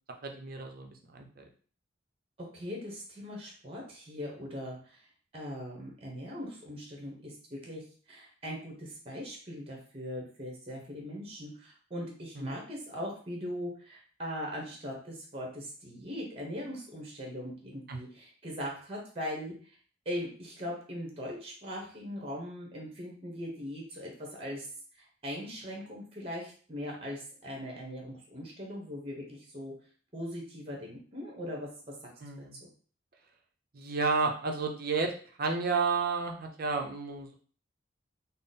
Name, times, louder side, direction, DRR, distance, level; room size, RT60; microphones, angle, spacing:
voice 1, 0.2-1.5 12.3-12.6 17.9-18.0 32.2-32.6 33.7-35.1 35.4-37.4, right 4 dB, 50° right, 3 dB, 0.6 m, -31 dB
voice 2, 2.5-5.0 5.3-19.5 20.0-24.7 25.0-29.7 30.1-31.9, equal, 30° right, 0 dB, 0.9 m, -40 dB
3.8 x 2.0 x 4.0 m, 0.43 s
head